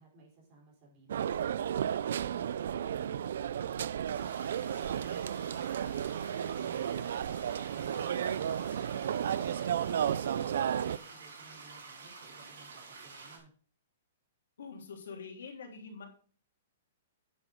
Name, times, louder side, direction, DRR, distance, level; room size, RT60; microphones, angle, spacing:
voice 1, 0.0-13.5, right 2 dB, 30° right, -3 dB, 4.2 m, -59 dB
sound 1, 1.1-11.0, right 9 dB, 65° right, 0.4 m, -33 dB
sound 2, 4.1-13.4, right 4 dB, 90° right, 3.4 m, -49 dB
voice 2, 14.6-16.1, left 5 dB, 85° left, 2 dB, 3.2 m, -45 dB
9.4 x 6.0 x 5.1 m, 0.43 s
hypercardioid pair, 170°, 0 cm